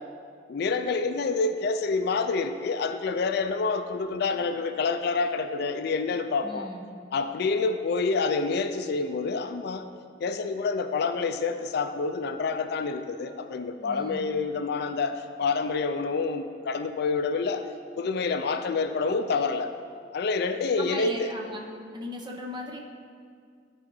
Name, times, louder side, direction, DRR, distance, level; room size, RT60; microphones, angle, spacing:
voice 1, 0.5-6.7 7.1-9.9 10.2-17.6 18.0-19.7 20.1-21.3, left 4 dB, 60° left, 9 dB, 0.4 m, -27 dB
voice 2, 6.4-6.9 13.8-14.3 20.8-21.6 21.9-22.8, equal, 25° right, 1 dB, 0.7 m, -37 dB
11.5 x 4.9 x 3.1 m, 2.2 s
head